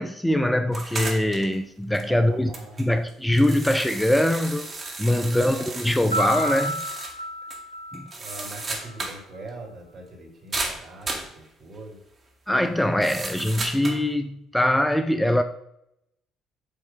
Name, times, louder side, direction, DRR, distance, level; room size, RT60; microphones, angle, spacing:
voice 1, 0.0-2.5 2.8-4.7 5.0-6.8 7.9-8.1 12.5-15.4, left 1 dB, 5° left, 0.5 m, -22 dB
sound 1, 0.7-1.6 1.9-2.0 2.5-7.2 7.5-7.6 7.9-9.2 9.5-9.6 10.5-11.3 13.0-14.0, right 3 dB, 35° right, 1.9 m, -34 dB
voice 2, 2.1-2.8 5.1-5.7 8.2-12.0, right 2 dB, 50° right, 2.2 m, -42 dB
Piano, 6.1-8.9, equal, 90° left, 0.6 m, -31 dB
7.6 x 3.2 x 5.6 m
figure-of-eight pair, 50°, 0 cm